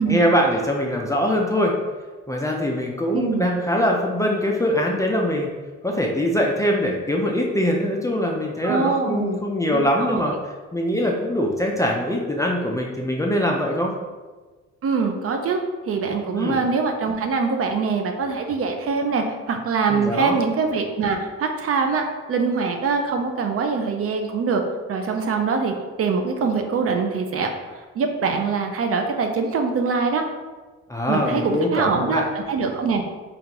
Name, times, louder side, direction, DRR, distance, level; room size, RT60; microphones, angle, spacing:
voice 1, 0.1-1.7 2.3-5.5 5.8-10.3 10.7-13.9 16.3-16.6 19.9-20.4 30.9-32.3, equal, 10° left, -1 dB, 0.4 m, -22 dB
voice 2, 3.1-3.5 8.6-9.4 9.7-10.3 14.8-24.6 24.9-30.2 31.1-33.0, right 4 dB, 50° right, 4 dB, 0.5 m, -23 dB
3.7 x 2.4 x 2.8 m, 1.3 s
cardioid pair, 90°, 30 cm